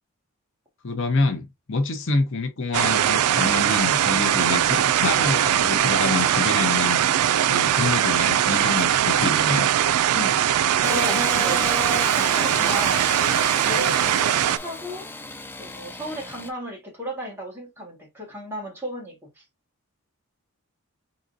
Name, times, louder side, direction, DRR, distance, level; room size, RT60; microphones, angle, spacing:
voice 1, 0.8-7.0 7.5-9.7, left 3 dB, 55° left, 0.7 m, -27 dB
sound 1, 2.7-14.6, right 10 dB, 85° right, 0.4 m, -21 dB
voice 2, 10.1-10.5 10.8-13.3 13.6-15.1 15.6-19.4, equal, 10° right, 1.8 m, -35 dB
Engine starting / Sawing, 10.8-16.5, left 2 dB, 10° left, 0.4 m, -33 dB
4.2 x 3.7 x 2.7 m
head